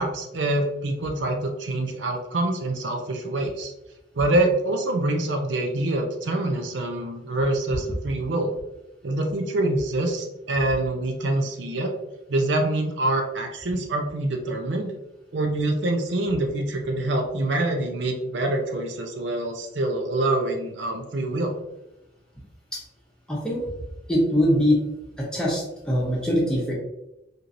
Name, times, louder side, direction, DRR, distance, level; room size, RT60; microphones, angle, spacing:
voice 1, 0.0-3.7 4.1-8.5 9.0-11.9 12.3-14.9 15.3-21.6, right 2 dB, 75° right, 3 dB, 0.6 m, -25 dB
voice 2, 23.3-23.6 24.1-24.8 25.2-26.7, equal, 5° left, -4 dB, 0.8 m, -22 dB
4.5 x 2.6 x 2.6 m, 0.93 s
head